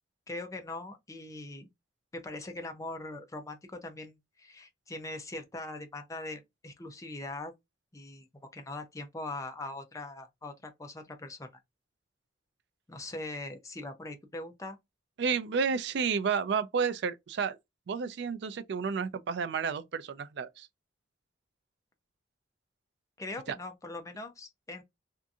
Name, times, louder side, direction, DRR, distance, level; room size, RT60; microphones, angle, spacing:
voice 1, 0.3-1.7 2.1-7.5 7.9-8.3 8.5-11.5 12.9-14.8 23.2-24.8, left 2 dB, 15° left, 0.5 m, -41 dB
voice 2, 15.2-17.6 17.9-20.7 23.5-23.6, right 6 dB, 65° right, 0.4 m, -31 dB
2.7 x 2.5 x 2.3 m
head